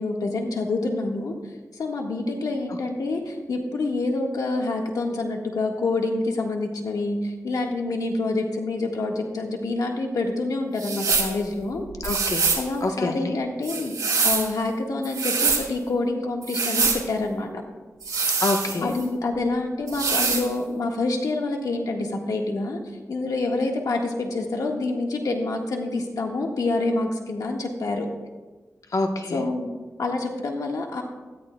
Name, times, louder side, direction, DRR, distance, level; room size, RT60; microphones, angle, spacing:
voice 1, 0.0-1.3 1.8-11.8 12.5-17.5 18.8-22.8 23.1-28.1 29.3-29.7 30.0-31.0, left 2 dB, 90° left, 1 dB, 1.6 m, -27 dB
sound 1, 10.8-11.3 12.0-12.7 13.6-14.5 15.0-15.6 16.4-17.0 18.0-19.0 19.9-20.5, right 4 dB, 85° right, 2.3 m, -24 dB
voice 2, 12.0-12.4 12.8-13.4 18.4-18.9 28.9-29.4, left 2 dB, 70° left, 4 dB, 1.1 m, -26 dB
17.5 x 13.5 x 2.3 m, 1.3 s
cardioid pair, 65°, 6 cm